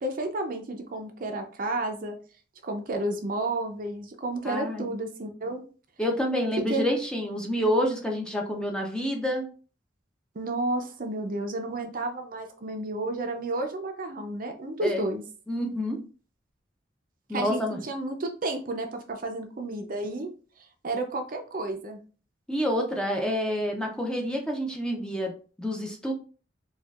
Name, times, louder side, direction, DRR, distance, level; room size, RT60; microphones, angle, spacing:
voice 1, 0.0-2.2 2.6-5.6 6.7-6.8 10.3-15.2 17.3-20.3 20.8-22.0, right 2 dB, 50° right, 5 dB, 0.5 m, -31 dB
voice 2, 4.4-4.9 6.0-9.5 14.8-15.1 15.5-16.0 17.3-17.8 22.5-25.3 25.6-26.1, equal, 5° left, 0 dB, 0.6 m, -28 dB
4.3 x 2.4 x 2.4 m, 0.38 s
head